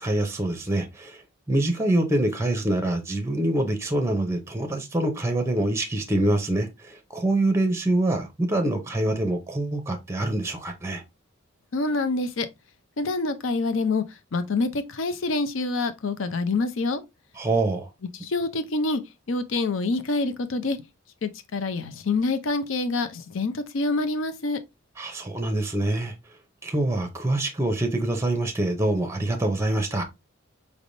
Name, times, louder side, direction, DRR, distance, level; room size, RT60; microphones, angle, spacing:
voice 1, 0.0-11.0 17.3-17.9 25.0-26.1 26.6-30.0, right 1 dB, 15° right, 0.6 m, -25 dB
voice 2, 11.7-12.5 13.0-14.0 14.3-17.0 18.2-19.0 19.3-20.8 21.2-24.6, left 3 dB, 65° left, 0.6 m, -26 dB
5.0 x 3.4 x 2.6 m
head